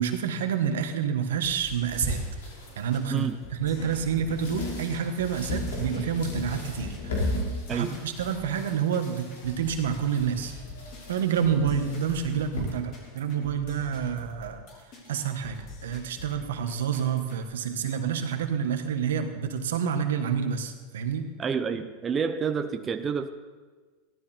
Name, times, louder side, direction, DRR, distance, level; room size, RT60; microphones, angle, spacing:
voice 1, 0.0-2.2 2.8-7.3 7.7-10.5 11.1-14.6 15.1-21.3, right 7 dB, 80° right, 7 dB, 1.5 m, -28 dB
sound 1, 1.4-17.4, left 2 dB, 50° left, 4.2 m, -46 dB
sound 2, 1.9-12.6, left 2 dB, 80° left, 4.5 m, -36 dB
voice 2, 21.4-23.3, right 6 dB, 25° right, 8 dB, 0.7 m, -29 dB
16.0 x 12.5 x 4.5 m, 1.4 s
hypercardioid pair, 110°, 0 cm